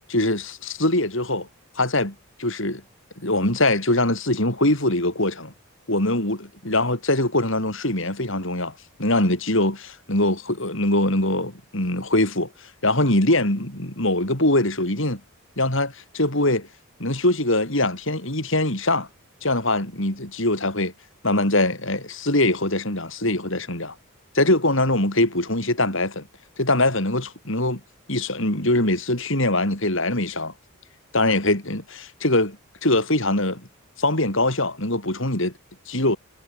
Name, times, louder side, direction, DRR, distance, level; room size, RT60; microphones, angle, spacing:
voice 1, 0.1-1.5 1.7-2.1 2.4-2.8 3.2-5.5 5.9-8.7 9.0-12.5 12.8-15.2 15.6-16.7 17.0-19.1 19.4-20.9 21.2-23.9 24.3-26.3 26.6-27.8 28.1-30.5 31.1-32.6 32.8-33.6 34.0-35.5 35.9-36.2, left 1 dB, 60° left, 5.3 m, -22 dB
head